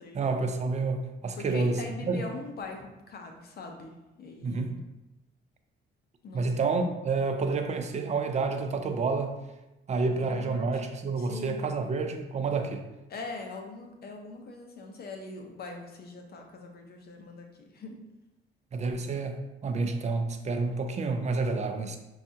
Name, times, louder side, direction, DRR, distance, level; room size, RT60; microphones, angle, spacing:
voice 1, 0.1-2.2 4.4-4.8 6.3-9.4 9.9-12.9 18.7-22.0, right 4 dB, 35° right, 6 dB, 0.5 m, -29 dB
voice 2, 1.4-3.9 4.2-4.8 6.2-6.5 10.1-10.7 11.2-11.7 13.1-17.9, left 3 dB, 50° left, 3 dB, 0.7 m, -42 dB
5.2 x 2.4 x 2.7 m, 0.99 s
cardioid pair, 90°, 20 cm